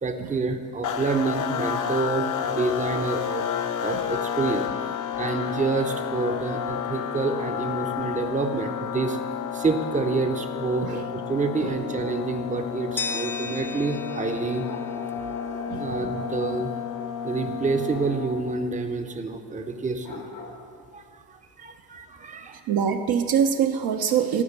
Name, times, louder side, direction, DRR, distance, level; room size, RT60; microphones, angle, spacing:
voice 1, 0.0-3.5 3.8-4.7 5.2-9.2 9.5-14.7 15.8-16.7 17.2-20.2 20.9-22.6, right 4 dB, 15° right, 6 dB, 0.8 m, -28 dB
sound 1, 0.8-18.7, left 9 dB, 40° left, 0.6 m, -31 dB
sound 2, 13.0-15.9, left 4 dB, 5° left, 0.3 m, -36 dB
sound 3, 14.6-17.2 17.8-18.2 20.0-20.7, left 1 dB, 80° left, 2.2 m, -40 dB
voice 2, 22.7-24.4, right 8 dB, 50° right, 5 dB, 0.7 m, -24 dB
12.5 x 5.1 x 6.7 m, 2.2 s
hypercardioid pair, 65°, 49 cm